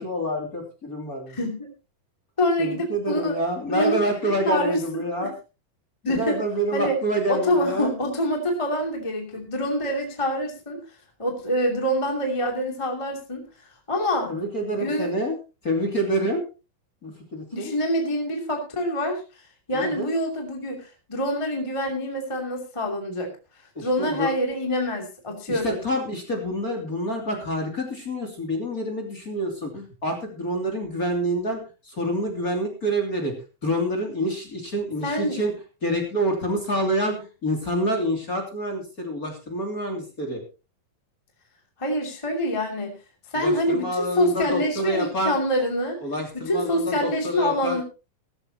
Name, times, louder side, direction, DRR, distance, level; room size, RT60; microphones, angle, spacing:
voice 1, 0.0-1.4 2.6-5.3 6.1-7.9 14.3-15.4 15.6-16.4 17.0-17.7 19.7-20.0 23.7-24.3 25.5-33.3 33.6-35.5 35.8-37.1 37.4-40.4 43.3-45.3 46.0-47.8, equal, 25° left, 3 dB, 2.9 m, -27 dB
voice 2, 1.3-1.7 2.4-3.4 3.7-3.9 4.2-5.3 6.0-6.4 6.7-7.0 7.3-10.8 11.2-13.4 13.9-14.4 14.8-15.1 16.2-16.3 17.5-19.2 19.7-23.3 23.8-25.8 35.0-35.4 41.8-42.9 43.3-46.0 46.3-47.8, equal, 10° left, 1 dB, 2.3 m, -26 dB
16.5 x 14.5 x 2.9 m, 0.31 s
omnidirectional pair, 4.2 m